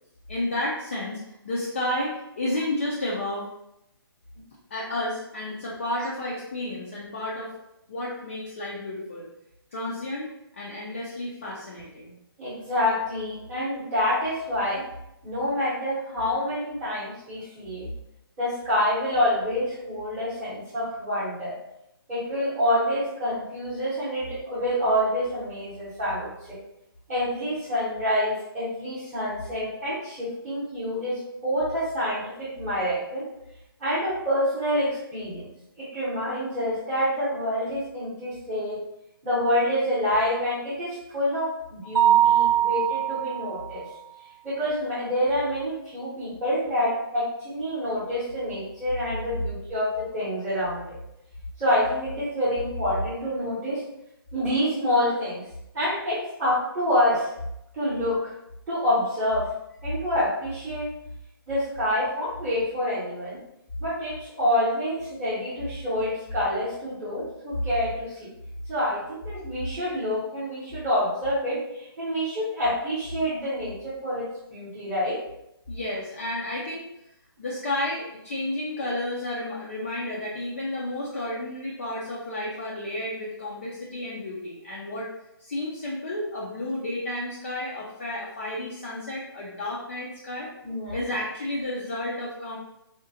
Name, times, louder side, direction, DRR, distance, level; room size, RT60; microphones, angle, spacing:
voice 1, 0.3-3.5 4.7-7.5 7.9-9.3 9.7-12.1 75.7-76.9 77.4-85.1 85.4-90.5 90.9-92.6, left 1 dB, 30° left, -5 dB, 0.4 m, -31 dB
voice 2, 12.4-14.8 15.2-17.9 18.4-21.6 22.1-26.6 27.1-33.2 33.8-35.5 35.8-38.8 39.2-43.9 44.4-50.9 51.6-53.8 54.3-55.4 55.7-57.3 57.7-58.3 58.7-59.5 59.8-60.9 61.5-63.4 63.8-68.3 68.7-75.2 90.6-91.0, left 1 dB, 10° right, -14 dB, 0.8 m, -27 dB
Mallet percussion, 41.9-43.7, right 11 dB, 65° right, 0.7 m, -21 dB
3.7 x 2.1 x 2.6 m, 0.84 s
hypercardioid pair, 170°, 13 cm